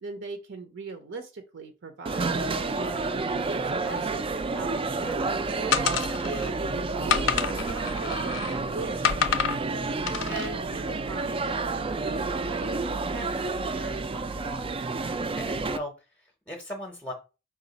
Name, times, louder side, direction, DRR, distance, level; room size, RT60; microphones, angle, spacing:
voice 1, 0.0-2.3 3.5-9.7 10.0-12.8 13.1-14.9, right 3 dB, 65° right, 7 dB, 0.6 m, -40 dB
sound 1, 2.1-15.8, right 3 dB, 25° right, 0.3 m, -30 dB
voice 2, 2.7-3.1 15.2-17.1, left 1 dB, 10° left, 2 dB, 0.7 m, -39 dB
sound 2, 5.7-6.5 7.1-8.6 9.0-9.6 10.1-10.5, left 7 dB, 65° left, 0.5 m, -27 dB
5.1 x 2.4 x 3.9 m, 0.30 s
head